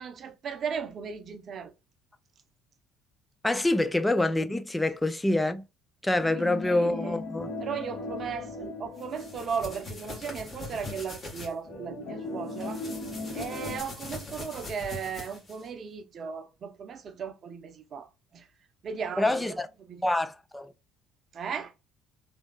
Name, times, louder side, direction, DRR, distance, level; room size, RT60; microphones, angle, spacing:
voice 1, 0.0-1.7 6.6-7.1 7.6-12.9 13.3-18.1 18.3-18.4 18.8-19.5 19.9-20.0 21.3-21.7, right 6 dB, 45° right, 0.7 m, -36 dB
voice 2, 3.4-5.6 6.0-7.5 19.2-19.7 20.0-20.7, left 2 dB, 10° left, 0.4 m, -26 dB
sound 1, 6.1-10.5 10.9-11.0 11.6-13.8, left 2 dB, 60° left, 1.9 m, -38 dB
sound 2, 9.0-11.5 12.5-15.7, left 2 dB, 35° left, 1.4 m, -41 dB
3.3 x 2.6 x 2.3 m
hypercardioid pair, 55°, 0 cm